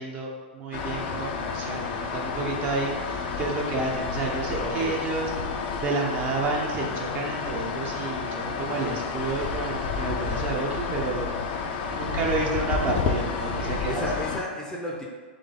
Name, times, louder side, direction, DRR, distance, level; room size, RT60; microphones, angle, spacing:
voice 1, 0.0-11.3 11.9-14.1, right 3 dB, 30° right, -1 dB, 0.7 m, -30 dB
sound 1, 0.7-14.4, left 5 dB, 55° left, 0.5 m, -30 dB
voice 2, 4.6-5.0 8.7-9.0 11.7-11.9 13.4-15.0, left 1 dB, 10° left, -2 dB, 0.6 m, -34 dB
3.9 x 3.3 x 3.7 m, 1.4 s
hypercardioid pair, 130°, 6 cm